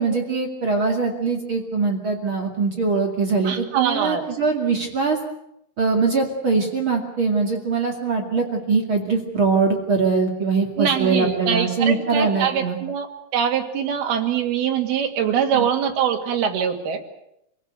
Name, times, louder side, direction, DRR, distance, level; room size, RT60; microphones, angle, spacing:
voice 1, 0.0-5.2 5.8-12.8 15.5-15.7, right 4 dB, 35° right, 2 dB, 2.8 m, -22 dB
voice 2, 3.5-4.2 10.8-13.1 13.3-17.0, right 8 dB, 80° right, 4 dB, 4.1 m, -23 dB
26.5 x 17.5 x 8.2 m, 0.79 s
omnidirectional pair, 4.3 m